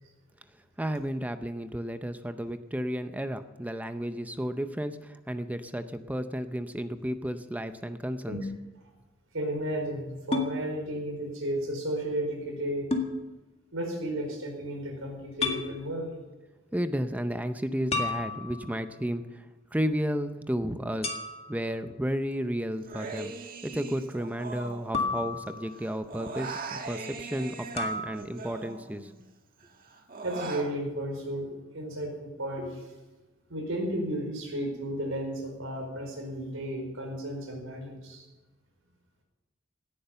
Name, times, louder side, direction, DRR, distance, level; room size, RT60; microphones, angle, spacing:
voice 1, 0.8-8.4 16.7-21.2 21.5-29.1, equal, 5° right, 10 dB, 0.6 m, -33 dB
voice 2, 9.3-12.9 13.7-16.1 30.2-32.9 33.5-38.3, right 1 dB, 85° right, 2 dB, 4.8 m, -33 dB
sound 1, 10.3-10.5 12.9-13.1 15.4-15.7 17.9-18.8 21.0-21.6 24.9-25.9 27.8-28.1, left 3 dB, 30° left, 1.8 m, -31 dB
Human voice, 22.8-25.5 25.7-29.2 29.6-30.7, right 4 dB, 45° right, 1.7 m, -40 dB
17.5 x 10.0 x 6.8 m, 1.1 s
head